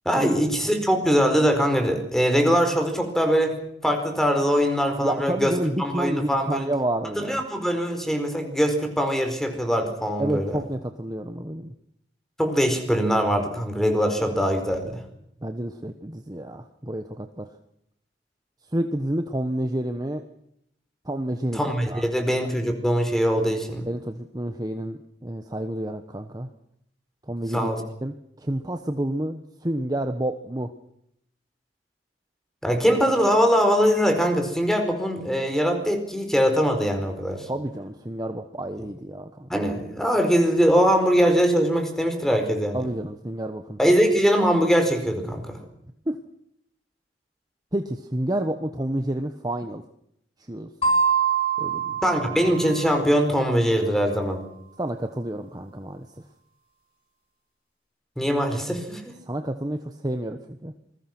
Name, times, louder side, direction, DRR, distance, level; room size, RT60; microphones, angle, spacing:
voice 1, 0.0-3.6 3.8-5.5 5.8-6.7 7.2-10.6 12.4-15.0 21.5-23.9 27.5-27.8 32.6-37.5 38.8-38.9 39.5-42.8 43.8-45.6 52.0-54.5 58.2-59.1, equal, ahead, 6 dB, 4.6 m, -22 dB
voice 2, 5.0-7.4 10.2-11.7 15.4-17.5 18.7-20.2 21.0-21.6 21.9-22.1 23.9-26.5 27.3-27.7 28.0-30.7 37.5-39.5 42.7-43.8 46.1-46.2 47.7-49.8 50.5-50.7 51.6-52.0 54.8-56.1 59.3-60.7, right 1 dB, 20° right, 6 dB, 1.2 m, -29 dB
sound 1, 50.8-53.3, right 5 dB, 30° left, 6.8 m, -25 dB
28.0 x 21.5 x 6.1 m, 0.74 s
head